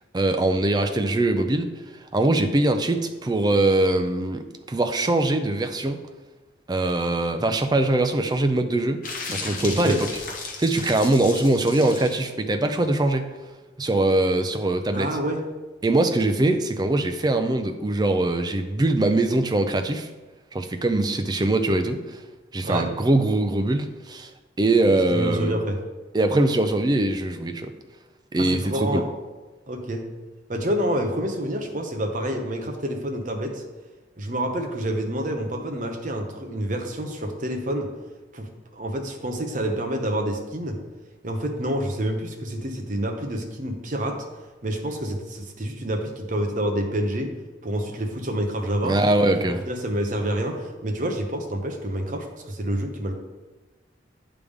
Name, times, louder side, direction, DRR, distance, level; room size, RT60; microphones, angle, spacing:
voice 1, 0.1-1.7 2.1-4.4 4.7-6.0 6.7-9.0 9.3-10.1 10.6-13.3 13.8-15.2 15.8-20.1 20.5-22.2 22.5-24.3 24.6-25.6 26.1-27.7 28.3-29.0 48.8-49.6, right 2 dB, 20° right, 7 dB, 0.4 m, -22 dB
sound 1, 9.0-12.3, left 4 dB, 45° left, 0.8 m, -35 dB
voice 2, 9.7-10.0 14.9-15.4 22.6-22.9 25.1-25.8 28.4-29.1 29.7-30.0 30.5-33.6 34.2-37.9 38.3-40.8 41.2-44.2 44.6-47.3 47.6-49.0 49.7-53.1, right 1 dB, 40° right, 3 dB, 0.7 m, -28 dB
9.4 x 3.4 x 3.5 m, 1.2 s
head